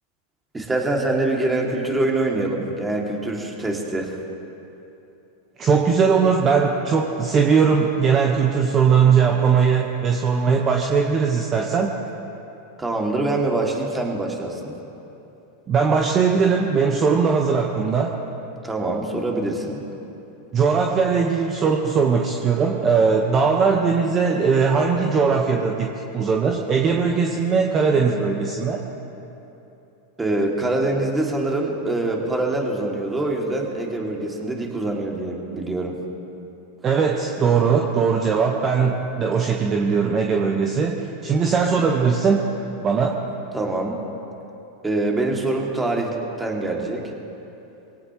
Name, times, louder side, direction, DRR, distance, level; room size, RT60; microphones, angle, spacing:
voice 1, 0.5-4.2 12.8-14.8 18.6-19.8 30.2-36.0 43.5-44.0 44.8-47.1, right 2 dB, 15° right, 0 dB, 2.6 m, -24 dB
voice 2, 5.6-11.9 15.7-18.2 20.5-28.8 36.8-42.4 42.8-43.2, right 5 dB, 30° right, 1 dB, 1.3 m, -20 dB
24.0 x 17.5 x 3.1 m, 3.0 s
hypercardioid pair, 100°, 0 cm